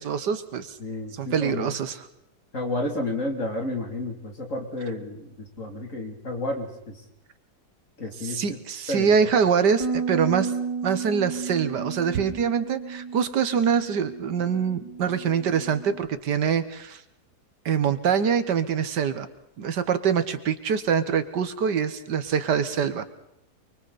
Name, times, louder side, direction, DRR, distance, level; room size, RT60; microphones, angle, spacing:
voice 1, 0.0-0.8 1.1-2.1 8.2-10.5 10.8-17.0 17.7-19.3 19.6-23.1, right 7 dB, 75° right, 12 dB, 1.8 m, -24 dB
voice 2, 0.8-1.8 2.5-7.0 8.0-8.6 8.9-9.1, left 2 dB, 45° left, 2 dB, 3.6 m, -31 dB
Bass guitar, 9.8-16.0, right 5 dB, 20° right, 1.8 m, -33 dB
29.5 x 23.0 x 4.2 m, 0.82 s
omnidirectional pair, 1.9 m